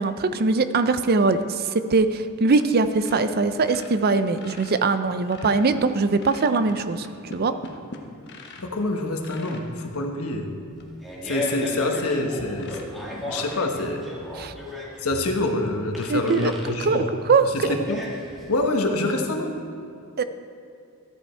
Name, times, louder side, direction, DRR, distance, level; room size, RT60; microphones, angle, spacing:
voice 1, 0.0-7.5 14.4-14.5 16.1-16.5 16.9-17.0 17.3-17.5 20.2-20.3, right 4 dB, 45° right, 11 dB, 0.5 m, -21 dB
sound 1, 2.5-2.7 3.0-5.7 6.2-8.7 9.2-9.7 10.3-10.4 10.8-10.9 11.3-11.6 11.9-14.0 15.6-15.7, left 3 dB, 50° left, 1.1 m, -43 dB
voice 2, 8.6-10.5 11.2-14.2 15.0-17.1 17.4-18.0 18.5-19.5, left 2 dB, 75° left, 3 dB, 1.3 m, -26 dB
Fart, 10.7-18.7, left 1 dB, ahead, 1.8 m, -35 dB
14.0 x 9.9 x 4.5 m, 2.4 s
head